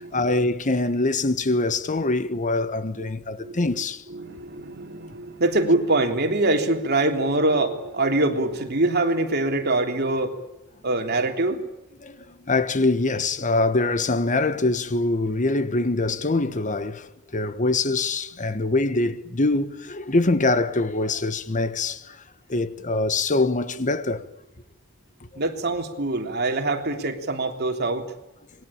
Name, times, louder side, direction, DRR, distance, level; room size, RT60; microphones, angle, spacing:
voice 1, 0.0-4.0 12.0-22.2 22.5-24.3, left 2 dB, 35° left, 1.3 m, -24 dB
voice 2, 4.1-10.4 10.8-11.6 25.4-28.0, right 2 dB, 50° right, 3.5 m, -24 dB
26.5 x 21.5 x 8.8 m
head